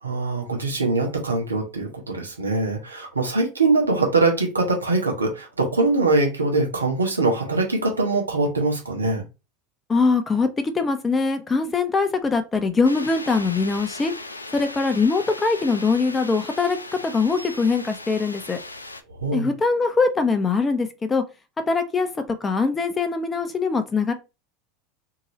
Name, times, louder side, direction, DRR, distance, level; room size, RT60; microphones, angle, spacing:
voice 1, 0.0-9.2 19.1-19.5, right 3 dB, 85° right, 1.0 m, -23 dB
voice 2, 9.9-10.5 10.7-14.1 14.5-16.8 17.0-18.6 19.3-21.2 21.7-22.1 22.4-24.1, left 4 dB, 20° left, 0.7 m, -22 dB
sound 1, 12.8-19.0, left 2 dB, 90° left, 0.3 m, -38 dB
2.8 x 2.7 x 3.1 m
figure-of-eight pair, 80°, 0 cm